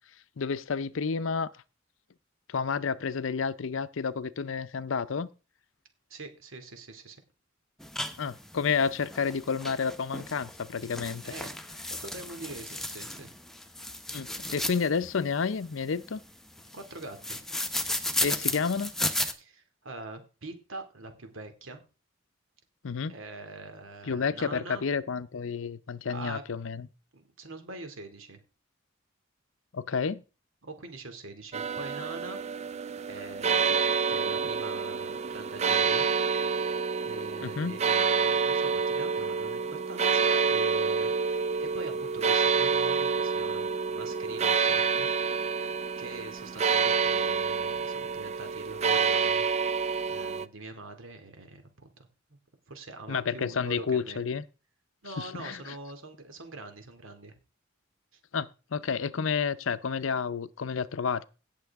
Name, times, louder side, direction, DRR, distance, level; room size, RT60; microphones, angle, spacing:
voice 1, 0.4-1.5 2.5-5.3 8.2-11.2 14.1-16.2 18.2-18.9 22.8-23.1 24.1-26.9 29.7-30.2 37.4-37.8 53.1-54.4 55.2-55.6 58.3-61.2, left 5 dB, 70° left, 0.6 m, -30 dB
voice 2, 6.1-7.2 11.2-11.6 11.9-13.3 16.7-17.4 19.4-21.8 23.1-24.8 26.0-26.4 27.1-28.4 30.6-32.4 33.1-36.1 36.5-36.8 37.0-41.1 41.6-45.1 46.0-49.5 50.1-52.4 52.7-54.2 55.0-57.4 58.1-58.2, right 2 dB, 80° right, 2.3 m, -44 dB
sound 1, 7.8-19.3, left 1 dB, ahead, 0.9 m, -35 dB
sound 2, 31.5-50.5, right 5 dB, 35° right, 0.4 m, -28 dB
17.5 x 6.8 x 3.5 m
head